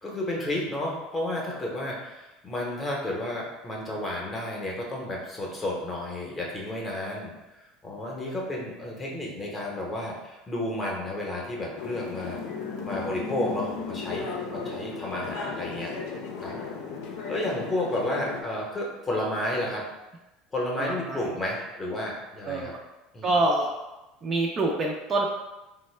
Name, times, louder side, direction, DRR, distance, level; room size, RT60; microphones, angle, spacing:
voice 1, 0.0-7.3 7.8-12.4 12.8-15.9 16.4-16.5 17.3-19.9 20.5-22.7 23.1-23.4, left 1 dB, 15° left, -2 dB, 0.7 m, -31 dB
sound 1, 11.8-18.4, left 5 dB, 70° left, 0.6 m, -35 dB
voice 2, 14.2-14.6 16.5-16.6 20.8-21.4 22.4-22.8 23.2-23.7 24.2-25.3, right 2 dB, 25° right, -1 dB, 0.4 m, -27 dB
3.6 x 2.1 x 3.1 m, 1.0 s
cardioid pair, 145°, 0 cm